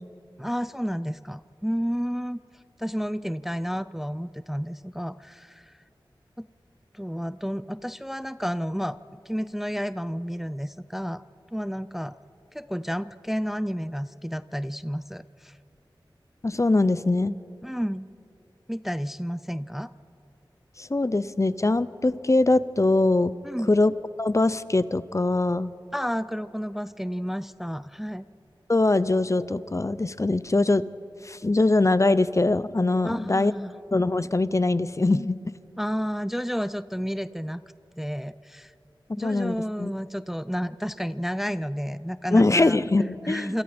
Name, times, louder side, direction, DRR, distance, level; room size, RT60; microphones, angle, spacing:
voice 1, 0.4-2.4 2.8-5.7 6.4-6.5 6.9-11.2 11.5-12.2 12.5-15.6 17.6-18.1 18.7-19.9 23.4-23.7 25.9-28.2 33.0-33.7 35.8-37.6 38.0-38.7 39.2-42.8 43.2-43.6, equal, 5° right, 15 dB, 0.4 m, -31 dB
voice 2, 16.4-17.4 20.8-23.3 23.7-23.9 24.2-25.7 28.7-30.8 31.2-33.5 33.9-35.4 39.2-39.9 42.3-43.6, left 2 dB, 35° left, 16 dB, 0.6 m, -22 dB
28.0 x 25.5 x 4.4 m, 2.7 s
wide cardioid pair, 50°, 9 cm